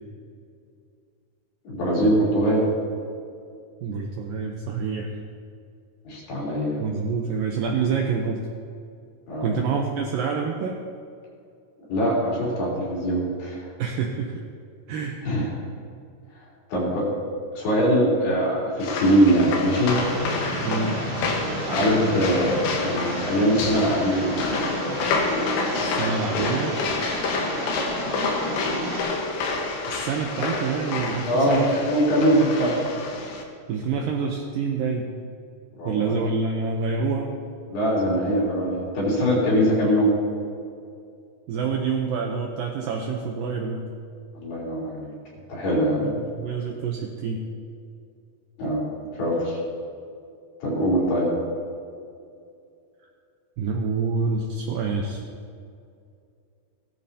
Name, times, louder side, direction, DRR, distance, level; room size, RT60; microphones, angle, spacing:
voice 1, 1.7-2.7 6.1-6.8 9.3-9.6 11.9-13.6 15.2-15.5 16.7-17.1 17.6-20.0 21.7-24.4 31.3-31.6 31.9-32.8 35.8-36.1 37.7-40.1 44.4-45.1 45.5-46.1 48.6-48.9 49.2-49.6 50.6-51.3, equal, 70° left, -5 dB, 5.3 m, -22 dB
voice 2, 3.8-5.1 6.8-8.4 9.4-10.8 13.8-14.4 14.9-15.2 20.6-21.0 26.0-26.7 29.9-31.9 33.7-35.1 35.9-37.4 41.5-43.8 46.0-47.4 53.6-55.2, right 5 dB, 80° right, 1 dB, 2.0 m, -27 dB
sound 1, 18.8-33.4, left 3 dB, 85° left, 3.5 m, -28 dB
sound 2, 19.7-29.0, right 1 dB, 50° right, 3.0 m, -32 dB
16.5 x 13.5 x 2.8 m, 2.4 s
omnidirectional pair, 4.9 m